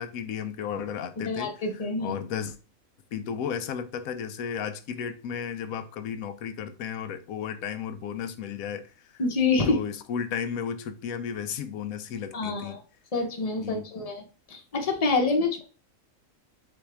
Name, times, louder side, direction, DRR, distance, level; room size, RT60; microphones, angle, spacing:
voice 1, 0.0-2.6 3.1-9.2 9.7-12.8 13.6-14.1, left 7 dB, 90° left, 1.1 m, -34 dB
voice 2, 1.2-2.2 9.2-9.8 12.3-12.8 13.1-14.2 14.5-15.6, left 3 dB, 30° left, 0.9 m, -26 dB
4.1 x 4.0 x 3.3 m
omnidirectional pair, 1.4 m